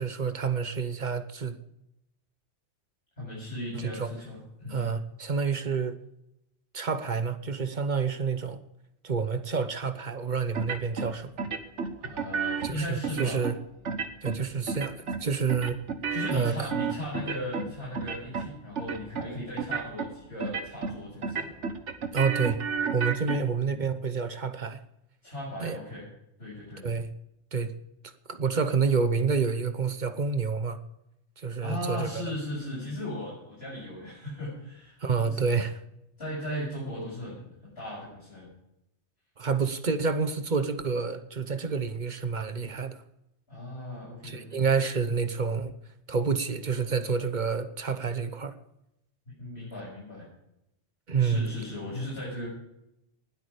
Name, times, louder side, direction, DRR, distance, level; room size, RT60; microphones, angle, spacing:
voice 1, 0.0-1.6 3.7-4.1 4.7-6.0 6.7-8.6 9.0-11.3 12.6-13.6 14.2-15.8 16.3-16.7 22.1-22.6 22.9-24.8 25.6-25.8 26.8-27.1 27.5-27.7 28.3-30.8 31.4-32.2 35.0-35.7 39.4-43.0 44.2-45.7 46.1-48.5 51.1-51.5, right 5 dB, 45° right, 10 dB, 1.0 m, -28 dB
voice 2, 3.2-4.9 12.0-13.4 16.1-21.5 23.3-23.4 25.2-26.1 26.4-26.9 31.6-35.0 35.2-35.6 36.2-38.5 43.5-44.6 49.3-50.3 51.2-52.5, left 1 dB, 60° left, -8 dB, 6.9 m, -37 dB
sound 1, 10.5-11.1 11.4-12.7 13.0-13.5 13.8-14.4 14.7-15.2 15.5-17.7 17.9-18.5 18.8-19.3 19.6-20.1 20.4-21.0 21.2-23.4, right 6 dB, 85° right, 1.5 m, -31 dB
19.5 x 8.5 x 5.1 m, 0.85 s
omnidirectional pair, 1.2 m